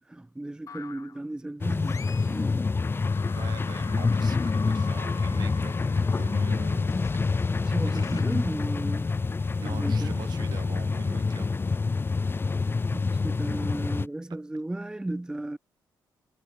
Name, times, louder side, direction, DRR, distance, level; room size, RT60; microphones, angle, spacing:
voice 1, 0.0-2.7 7.6-9.1 9.6-10.2 12.9-15.6, right 1 dB, 10° right, 0.6 m, -35 dB
sound 1, 0.7-1.2 1.8-2.4 2.7-9.2, left 6 dB, 50° left, 2.7 m, -44 dB
sound 2, 1.6-14.1, left 4 dB, 30° left, 1.2 m, -27 dB
voice 2, 3.4-7.2 7.8-8.5 9.6-11.5, right 10 dB, 70° right, 2.9 m, -44 dB
cardioid pair, 70°, 7 cm